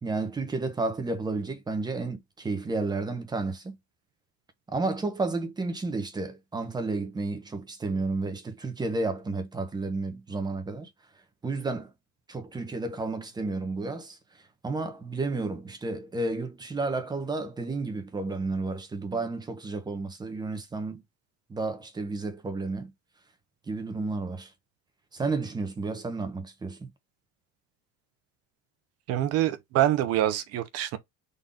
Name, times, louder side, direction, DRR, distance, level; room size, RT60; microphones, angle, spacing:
voice 1, 0.0-3.8 4.7-10.9 11.4-11.9 12.3-14.2 14.6-21.0 21.5-22.9 23.7-24.5 25.1-26.9, right 3 dB, 10° right, 0.9 m, -31 dB
voice 2, 29.1-31.0, right 12 dB, 50° right, 0.8 m, -25 dB
4.0 x 2.6 x 3.5 m
cardioid pair, 150°, 33 cm